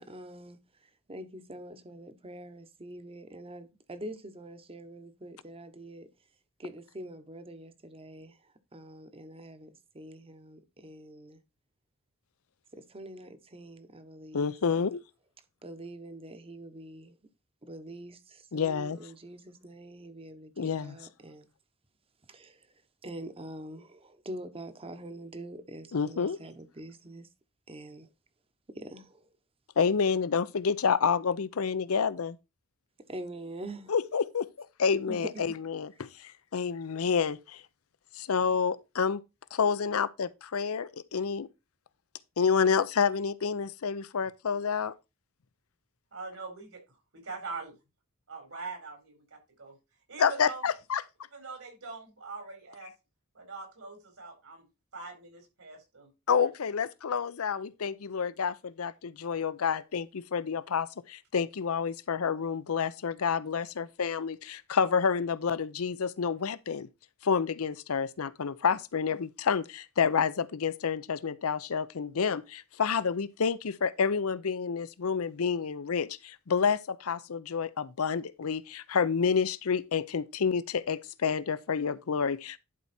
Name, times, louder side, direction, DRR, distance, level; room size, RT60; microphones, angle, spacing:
voice 1, 0.0-6.1 6.6-11.4 12.7-14.9 15.6-17.2 17.6-21.5 22.3-22.7 23.0-27.3 27.7-28.1 28.7-29.3 33.1-33.9 35.1-35.4, right 1 dB, 25° right, 1.0 m, -45 dB
voice 2, 14.3-15.0 18.5-19.0 20.6-21.0 25.9-26.4 29.8-32.4 33.9-37.6 38.1-39.2 39.5-41.5 42.4-44.9 50.2-51.0 56.3-66.9 67.2-82.6, left 6 dB, 80° left, 0.6 m, -29 dB
voice 3, 46.1-47.8 48.3-49.8 50.1-50.6 51.3-52.9 53.3-54.6 54.9-56.1 56.4-56.5, right 4 dB, 75° right, 4.1 m, -43 dB
11.0 x 4.7 x 4.2 m
head